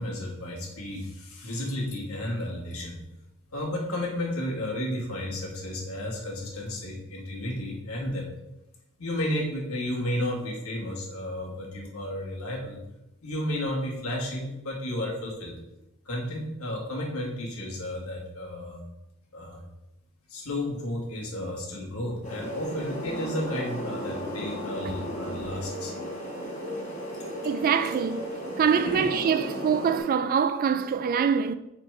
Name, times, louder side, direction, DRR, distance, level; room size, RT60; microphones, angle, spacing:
voice 1, 0.0-3.0 3.5-8.3 9.0-12.8 13.2-15.6 16.1-18.8 19.3-19.6 20.3-25.9 27.1-27.3 28.7-29.1, left 1 dB, 80° left, 2.0 m, -32 dB
sound 1, 22.2-30.0, equal, 35° left, 2.4 m, -35 dB
voice 2, 26.6-31.5, right 7 dB, 40° right, 0.3 m, -25 dB
7.1 x 3.7 x 5.6 m
head